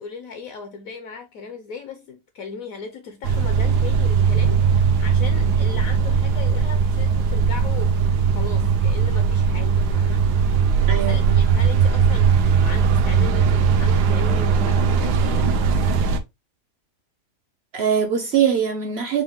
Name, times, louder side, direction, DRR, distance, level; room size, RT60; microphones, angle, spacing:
voice 1, 0.0-8.0 8.3-10.3 11.1-16.1, left 5 dB, 65° left, 1.1 m, -37 dB
sound 1, 3.2-16.2, right 6 dB, 85° right, 1.3 m, -19 dB
voice 2, 10.9-11.4 17.7-19.2, right 8 dB, 60° right, 0.7 m, -22 dB
4.7 x 2.2 x 3.6 m
omnidirectional pair, 1.7 m